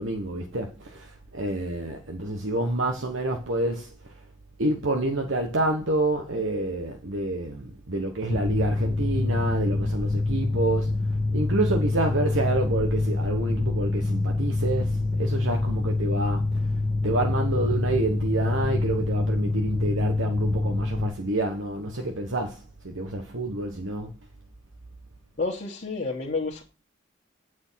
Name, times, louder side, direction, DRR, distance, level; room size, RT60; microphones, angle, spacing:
voice 1, 0.0-4.1 4.6-10.9 11.3-16.6 17.0-24.1, right 2 dB, 75° right, 1.3 m, -28 dB
Mechanical fan, 8.3-21.1, left 2 dB, 10° left, 1.2 m, -26 dB
voice 2, 25.4-26.6, left 3 dB, 45° left, 1.7 m, -29 dB
8.5 x 4.9 x 5.8 m
head